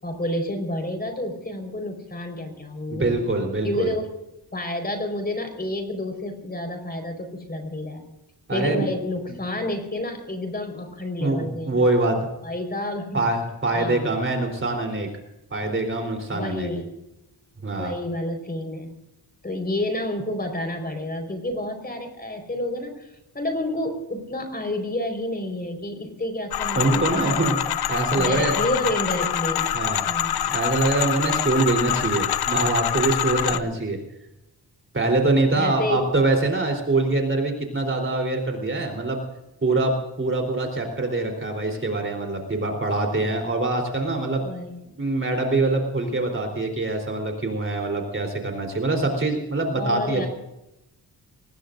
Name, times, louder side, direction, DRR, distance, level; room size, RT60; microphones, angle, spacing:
voice 1, 0.0-3.1 3.6-4.1 4.5-8.0 8.5-11.8 12.4-13.2 13.7-14.1 16.3-16.9 17.7-18.9 19.4-23.1 23.3-27.6 28.2-29.7 30.1-30.4 35.5-36.1 44.4-44.8 49.7-50.3, left 1 dB, 25° left, 5 dB, 4.7 m, -29 dB
voice 2, 2.9-3.9 8.5-8.8 11.2-12.2 13.1-15.1 15.5-16.7 17.6-18.0 26.8-27.6 27.9-28.6 29.7-30.0 30.5-34.0 34.9-39.2 39.6-44.4 45.0-50.3, right 2 dB, 30° right, 4 dB, 3.8 m, -24 dB
sound 1, 26.5-33.6, left 11 dB, 70° left, 0.7 m, -25 dB
24.5 x 20.0 x 2.6 m, 0.91 s
wide cardioid pair, 110°, 39 cm